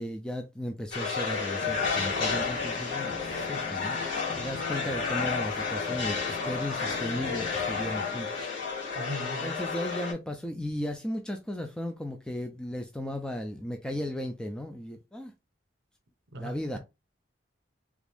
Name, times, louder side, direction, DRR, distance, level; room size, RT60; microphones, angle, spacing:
voice 1, 0.0-8.4 9.4-15.3 16.4-16.8, left 1 dB, 5° left, 0.3 m, -36 dB
sound 1, 0.9-10.1, left 5 dB, 85° left, 2.0 m, -31 dB
sound 2, 1.3-9.0, left 3 dB, 30° left, 1.3 m, -42 dB
voice 2, 8.9-9.5 16.3-16.8, equal, 70° right, 0.8 m, -38 dB
3.5 x 2.5 x 3.4 m
head